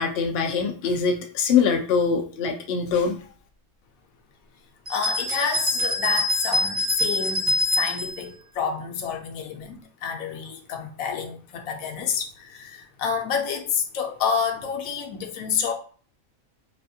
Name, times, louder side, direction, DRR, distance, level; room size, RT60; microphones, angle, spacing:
voice 1, 0.0-3.2, left 6 dB, 60° left, 1 dB, 0.7 m, -23 dB
voice 2, 4.9-15.7, left 6 dB, 85° left, 3 dB, 1.0 m, -29 dB
sound 1, 4.9-8.2, left 1 dB, 40° right, 1.0 m, -25 dB
4.2 x 2.2 x 2.7 m, 0.43 s
omnidirectional pair, 1.4 m